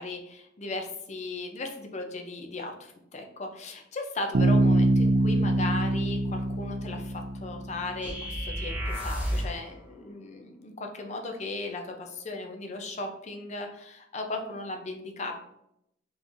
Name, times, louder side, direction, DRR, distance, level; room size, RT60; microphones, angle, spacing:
voice 1, 0.0-15.3, left 2 dB, 35° left, 3 dB, 0.5 m, -37 dB
Bass guitar, 4.3-8.1, right 1 dB, 55° right, 0.4 m, -24 dB
sound 1, 8.0-9.6, equal, 10° right, 0.9 m, -31 dB
3.8 x 3.0 x 2.5 m, 0.80 s
head